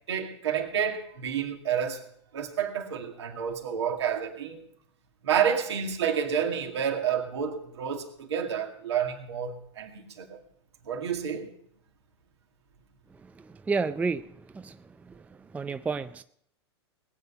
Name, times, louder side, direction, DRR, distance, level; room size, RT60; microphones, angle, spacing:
voice 1, 0.1-2.0 2.3-4.7 5.2-10.4 10.9-11.5, right 8 dB, 75° right, 2.3 m, -29 dB
voice 2, 13.4-14.8 15.1-15.2 15.5-16.2, right 4 dB, 10° right, 0.4 m, -31 dB
20.5 x 8.3 x 5.6 m
hypercardioid pair, 100°, 14 cm